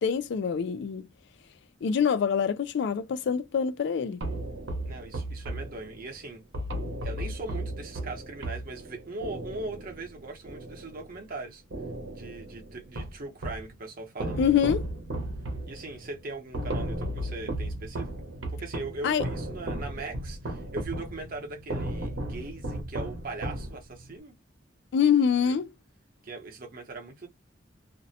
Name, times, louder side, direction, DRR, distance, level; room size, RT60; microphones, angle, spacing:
voice 1, 0.0-1.1 1.8-4.2 14.4-14.9 19.0-19.2 24.9-25.7, left 7 dB, 65° left, 0.3 m, -25 dB
sound 1, 4.2-11.3 11.7-13.7 14.2-24.1, right 1 dB, 80° right, 0.8 m, -35 dB
voice 2, 4.8-6.4 7.0-11.6 12.1-14.4 15.7-18.3 18.5-24.3 25.4-25.6 26.2-27.3, right 3 dB, 50° right, 0.8 m, -40 dB
2.5 x 2.1 x 2.7 m
head